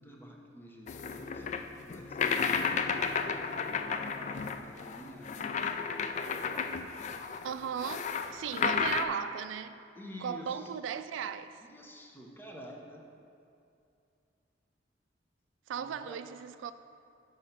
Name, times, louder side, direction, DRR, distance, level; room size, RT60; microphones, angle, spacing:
voice 1, 0.0-1.5 1.8-2.5 3.9-5.7 6.0-6.7 7.0-7.2 9.9-10.7 11.2-11.3 11.6-13.1 15.7-16.2, equal, 10° left, 0.7 m, -49 dB
sound 1, 0.9-9.0, left 6 dB, 40° left, 0.3 m, -33 dB
voice 2, 7.4-9.8 10.2-11.6 15.7-16.7, right 8 dB, 90° right, 0.3 m, -37 dB
6.3 x 5.1 x 5.6 m
head